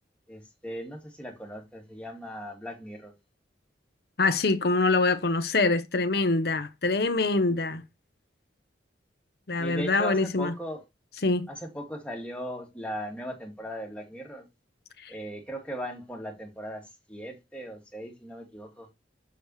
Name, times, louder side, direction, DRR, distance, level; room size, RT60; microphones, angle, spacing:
voice 1, 0.3-3.1 9.6-10.8 11.5-14.5 15.1-18.9, equal, 5° left, 2.1 m, -38 dB
voice 2, 4.2-7.8 9.5-10.5 11.2-11.5 15.0-15.1, left 3 dB, 55° left, 0.8 m, -24 dB
6.9 x 6.6 x 3.1 m
head